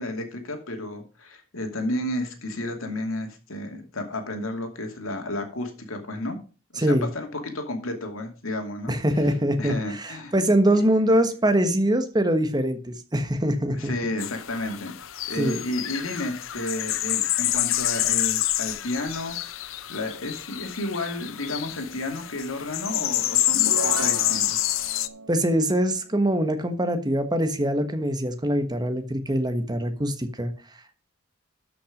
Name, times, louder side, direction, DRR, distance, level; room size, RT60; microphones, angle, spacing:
voice 1, 0.0-6.4 6.7-8.9 9.6-10.3 13.7-15.0 15.3-19.4 19.9-24.6, left 1 dB, 85° left, 4 dB, 2.5 m, -32 dB
voice 2, 6.8-7.1 8.9-13.9 15.4-15.6 25.3-30.5, right 1 dB, 20° right, 9 dB, 1.3 m, -23 dB
sound 1, 14.2-25.1, left 14 dB, 70° left, 0.7 m, -27 dB
sound 2, 23.5-27.1, right 4 dB, 90° right, 0.8 m, -37 dB
12.5 x 6.0 x 5.1 m, 0.36 s
head